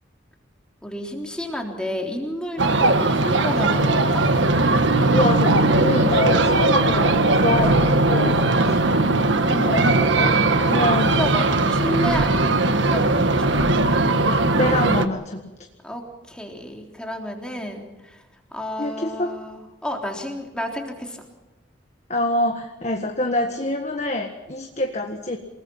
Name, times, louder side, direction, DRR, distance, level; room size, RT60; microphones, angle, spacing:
voice 1, 0.8-4.2 11.2-13.7 15.8-18.2 18.5-21.2, equal, 5° left, 1 dB, 3.6 m, -31 dB
sound 1, 2.6-15.1, right 2 dB, 70° right, 1.5 m, -19 dB
voice 2, 5.1-8.4 8.6-8.9 9.4-11.2 14.6-15.5 18.8-19.4 22.1-25.4, left 1 dB, 35° left, 4 dB, 1.6 m, -25 dB
28.5 x 20.0 x 5.7 m, 1.1 s
head